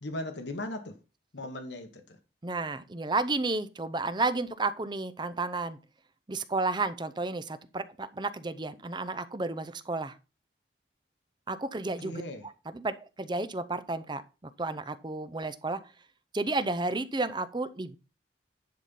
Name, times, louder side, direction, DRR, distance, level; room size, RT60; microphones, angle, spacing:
voice 1, 0.0-0.9 1.3-2.0 12.0-12.4, left 1 dB, 75° left, 1.1 m, -37 dB
voice 2, 2.4-5.8 6.3-10.1 11.5-12.2 12.7-14.2 14.6-15.8 16.3-18.0, right 3 dB, 25° right, 0.6 m, -32 dB
10.5 x 4.2 x 5.3 m
head